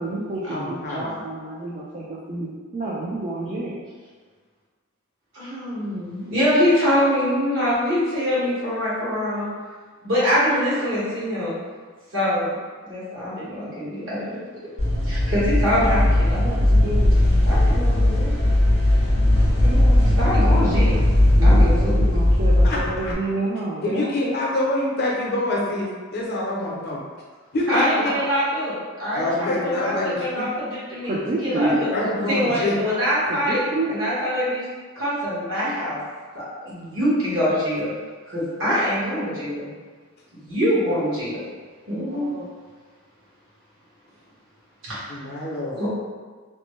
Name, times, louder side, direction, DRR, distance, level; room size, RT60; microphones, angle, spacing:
voice 1, 0.0-3.7 16.3-17.5 18.8-19.0 19.3-19.4 20.6-20.9 21.4-24.4 31.0-31.8 33.3-34.0 41.9-42.5, right 2 dB, 35° right, -6 dB, 0.4 m, -29 dB
voice 2, 0.5-1.2 22.6-23.1 23.8-27.0 27.5-28.1 29.1-30.4 31.9-32.7 45.1-45.9, left 1 dB, 50° left, -3 dB, 0.6 m, -26 dB
voice 3, 5.3-9.5 10.0-11.6 12.1-12.6 12.8-14.3 15.1-16.4 17.5-18.4 19.6-21.0 21.4-22.0 27.7-31.9 32.3-33.6 33.9-34.6 34.9-36.0 36.3-37.9 38.3-39.7 40.4-41.4 41.8-42.3 44.9-45.1 45.8-45.9, equal, 65° right, -9 dB, 1.4 m, -24 dB
sound 1, 14.8-23.1, left 1 dB, 85° right, 1.4 m, -18 dB
3.1 x 2.1 x 3.1 m, 1.5 s
head